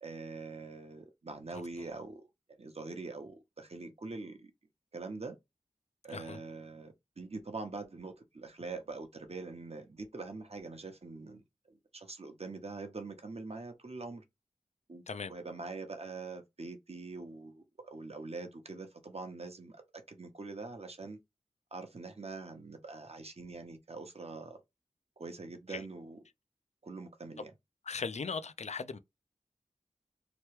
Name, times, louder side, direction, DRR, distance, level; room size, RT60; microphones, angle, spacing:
voice 1, 0.0-2.3 2.6-4.5 4.9-5.4 6.0-14.2 14.9-15.0 15.3-19.8 20.1-21.2 21.7-24.6 25.2-26.2 26.8-27.5, right 3 dB, 50° right, 0.8 m, -44 dB
voice 2, 27.9-29.0, left 5 dB, 55° left, 0.4 m, -38 dB
3.0 x 2.2 x 3.1 m
wide cardioid pair, 40°, 14 cm